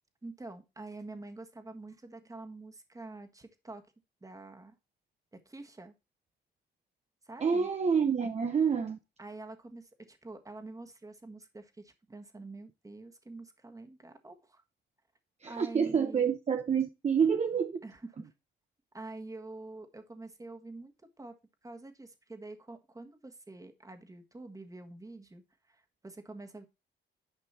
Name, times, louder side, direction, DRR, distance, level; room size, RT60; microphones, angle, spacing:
voice 1, 0.2-3.8 4.2-4.8 5.3-5.9 7.2-7.7 9.2-14.6 15.5-16.3 17.8-18.3 18.9-21.3 21.6-26.7, right 2 dB, 15° right, 1.6 m, -46 dB
voice 2, 7.4-9.0 15.4-17.8, right 6 dB, 35° right, 0.8 m, -28 dB
10.0 x 5.3 x 4.3 m
cardioid pair, 90°, 20 cm